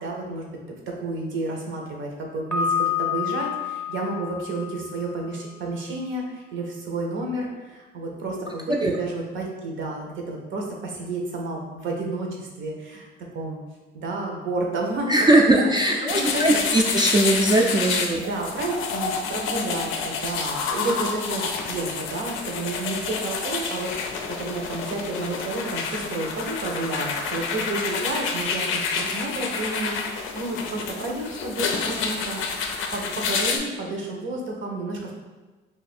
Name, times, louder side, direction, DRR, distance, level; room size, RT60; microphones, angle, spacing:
voice 1, 0.0-13.1 13.3-13.6 13.9-15.1 15.4-16.9 18.2-35.1, right 2 dB, 75° right, 0 dB, 0.8 m, -31 dB
Piano, 2.5-5.4, left 7 dB, 10° left, 0.6 m, -28 dB
voice 2, 15.1-18.2, right 1 dB, 20° right, -1 dB, 0.3 m, -19 dB
sound 1, 16.1-33.6, left 5 dB, 85° left, 0.4 m, -29 dB
2.6 x 2.5 x 4.1 m, 1.2 s
cardioid pair, 90°, 20 cm